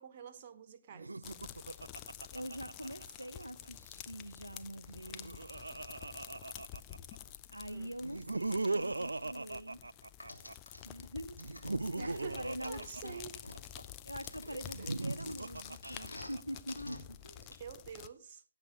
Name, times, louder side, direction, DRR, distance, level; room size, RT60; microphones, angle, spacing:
voice 1, 0.0-1.5 7.6-7.9 11.9-13.4 14.5-15.0 17.4-18.4, right 7 dB, 30° right, 0.8 m, -49 dB
Laughter, 0.9-3.4 4.8-7.2 8.0-10.5 11.4-13.8 14.7-16.6, right 2 dB, 70° right, 0.5 m, -39 dB
sound 1, 1.2-18.1, left 12 dB, 20° left, 0.5 m, -50 dB
voice 2, 2.3-5.4 7.5-9.8 10.8-11.4 11.9-13.2 14.0-17.5, equal, 85° right, 0.9 m, -44 dB
sound 2, 10.2-10.8 11.4-13.8 14.2-16.3 16.7-17.0 17.4-17.5, left 2 dB, 80° left, 3.0 m, -47 dB
16.5 x 7.9 x 3.6 m
figure-of-eight pair, 140°, 0 cm